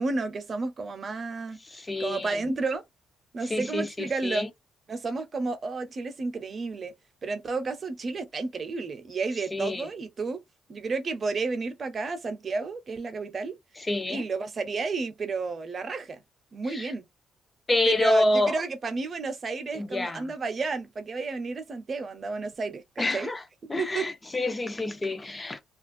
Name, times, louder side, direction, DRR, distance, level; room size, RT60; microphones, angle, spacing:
voice 1, 0.0-1.6 2.0-2.8 3.3-4.5 4.9-6.9 7.2-10.4 10.7-13.5 14.1-16.2 16.5-17.0 17.8-23.3 23.6-24.1, right 3 dB, 40° right, 0.7 m, -31 dB
voice 2, 1.6-2.4 3.4-4.5 9.5-9.9 13.8-14.3 16.7-16.9 17.7-18.6 19.7-20.3 23.0-23.4 23.7-25.7, left 2 dB, 20° left, 0.5 m, -28 dB
2.4 x 2.2 x 2.5 m
cardioid pair, 90°, 0 cm